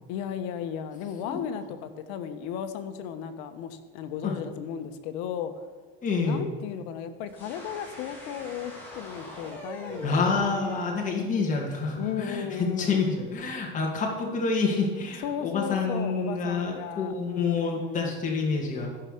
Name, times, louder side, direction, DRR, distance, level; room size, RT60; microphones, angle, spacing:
voice 1, 0.1-5.7 6.2-10.1 12.0-13.0 15.2-18.2, left 8 dB, 65° left, 9 dB, 1.2 m, -35 dB
voice 2, 6.0-6.5 10.0-18.9, left 4 dB, 25° left, -1 dB, 2.0 m, -28 dB
sound 1, 7.3-10.9, equal, 5° left, 3.2 m, -42 dB
14.0 x 5.8 x 6.6 m, 1.4 s
supercardioid pair, 130°, 29 cm